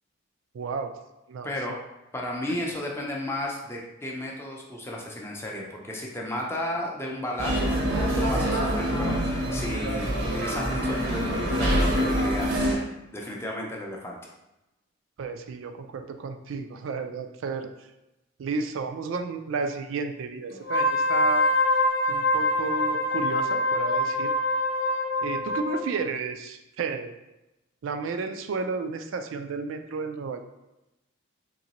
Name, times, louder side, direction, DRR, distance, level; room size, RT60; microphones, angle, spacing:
voice 1, 0.5-0.9 1.3-1.8 15.2-17.7 18.4-21.5 22.1-24.3 25.2-27.2 27.8-30.4, right 4 dB, 75° right, 7 dB, 0.3 m, -32 dB
voice 2, 1.4-1.8 2.1-7.8 8.1-12.9 13.1-14.2, left 1 dB, 10° left, -2 dB, 0.4 m, -33 dB
sound 1, 7.4-12.7, equal, 90° right, 0.9 m, -25 dB
Wind instrument woodwind instrument, 20.6-25.9, left 1 dB, 55° left, 0.8 m, -24 dB
3.8 x 2.9 x 2.9 m, 0.95 s
head